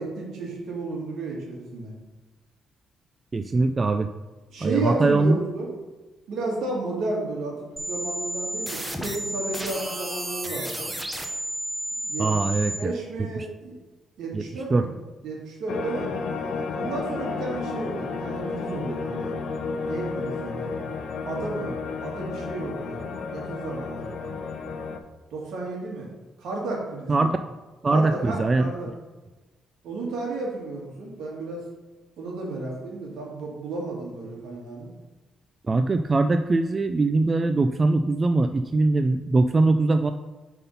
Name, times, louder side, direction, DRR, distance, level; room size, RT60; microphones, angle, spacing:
voice 1, 0.0-1.9 4.5-5.7 6.3-7.6 7.9-10.9 12.0-13.7 14.2-14.9 15.2-16.1 16.7-19.3 19.9-20.7 21.2-23.0 23.3-24.3 25.3-26.1 26.4-27.3 27.9-28.9 29.8-31.6 32.2-34.9, right 2 dB, 75° right, -2 dB, 2.0 m, -32 dB
voice 2, 3.3-4.1 4.6-5.4 12.2-12.9 13.4-13.5 14.3-14.4 14.7-14.9 27.1-27.4 27.8-28.7 35.7-40.1, right 3 dB, 30° right, 8 dB, 0.3 m, -22 dB
sound 1, 7.8-12.8, right 1 dB, 10° right, 0.8 m, -32 dB
sound 2, 15.7-25.0, left 4 dB, 65° left, 0.6 m, -32 dB
5.2 x 4.2 x 5.6 m, 1.2 s
cardioid pair, 90°, 0 cm